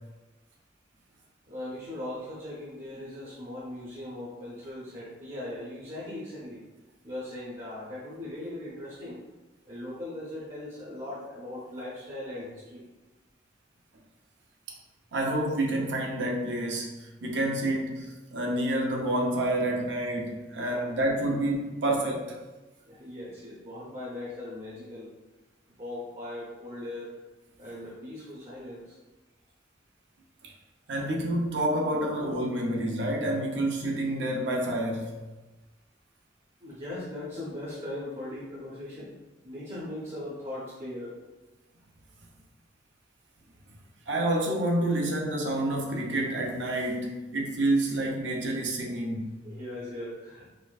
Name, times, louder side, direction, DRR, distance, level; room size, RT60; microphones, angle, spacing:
voice 1, 1.5-6.6 7.0-9.2 9.7-12.8 20.6-20.8 22.9-25.1 25.8-27.1 27.6-29.0 36.6-39.2 39.4-41.1 49.4-50.5, left 1 dB, 35° right, -7 dB, 0.7 m, -39 dB
voice 2, 15.1-22.4 30.4-30.5 30.9-35.1 44.1-49.4, right 1 dB, 80° right, -1 dB, 0.6 m, -28 dB
4.2 x 2.5 x 2.4 m, 1.1 s
head